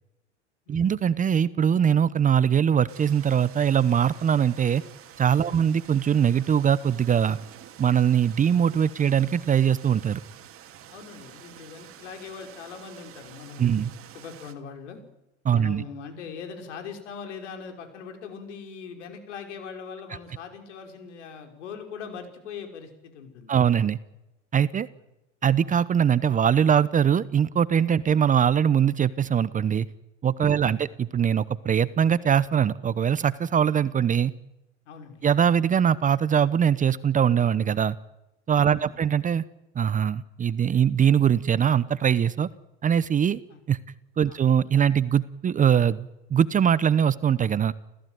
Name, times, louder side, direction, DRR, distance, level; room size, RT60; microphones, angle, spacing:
voice 1, 0.7-4.8 5.2-7.4 7.8-10.2 13.6-13.9 15.4-15.8 23.5-24.0 24.5-24.9 25.4-29.9 30.2-34.3 35.2-38.0 38.5-39.4 39.7-42.5 42.8-43.4 43.7-43.8 44.2-47.7, right 8 dB, 20° right, 17 dB, 0.8 m, -22 dB
sound 1, 2.9-14.5, right 11 dB, 40° right, 2.8 m, -48 dB
voice 2, 10.9-15.0 15.5-23.6 30.5-30.8 34.9-35.2 38.6-39.0 43.5-43.6 44.3-44.4, left 6 dB, 75° left, 5 dB, 5.7 m, -41 dB
29.5 x 15.5 x 9.4 m, 0.95 s
hypercardioid pair, 100°, 36 cm